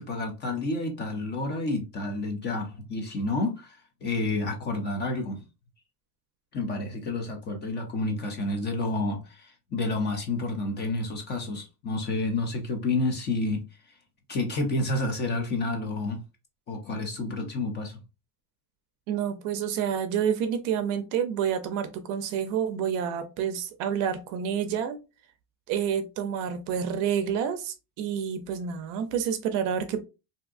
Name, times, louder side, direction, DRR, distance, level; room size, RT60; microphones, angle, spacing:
voice 1, 0.0-5.4 6.5-14.0 14.3-16.2 16.7-18.0, left 2 dB, 25° left, 0.5 m, -30 dB
voice 2, 19.1-25.0 25.7-30.1, right 8 dB, 50° right, 0.5 m, -29 dB
3.5 x 2.7 x 2.4 m
cardioid pair, 160°, 42 cm